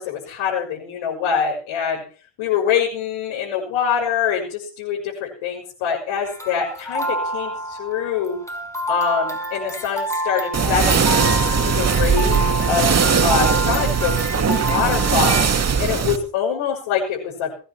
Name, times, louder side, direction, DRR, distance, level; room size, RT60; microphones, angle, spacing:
voice 1, 0.0-2.0 2.4-8.4 8.9-11.1 11.5-12.9 13.2-17.5, left 7 dB, 90° left, -3 dB, 6.5 m, -24 dB
sound 1, 6.3-15.4, equal, 5° left, 5.9 m, -28 dB
sound 2, 10.5-16.2, right 6 dB, 30° right, 2.4 m, -19 dB
20.0 x 10.0 x 6.0 m, 0.40 s
cardioid pair, 100°, 47 cm